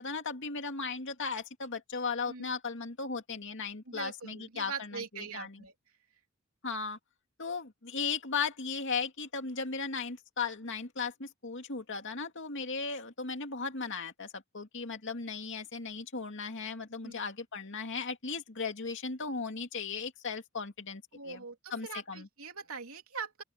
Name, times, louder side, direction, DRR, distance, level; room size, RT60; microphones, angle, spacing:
voice 1, 0.0-5.6 6.6-7.0 7.4-21.4 21.7-22.3, left 5 dB, 60° left, 2.5 m, -36 dB
voice 2, 3.9-5.7 17.0-17.2 21.1-23.4, right 5 dB, 80° right, 3.1 m, -42 dB
open air
head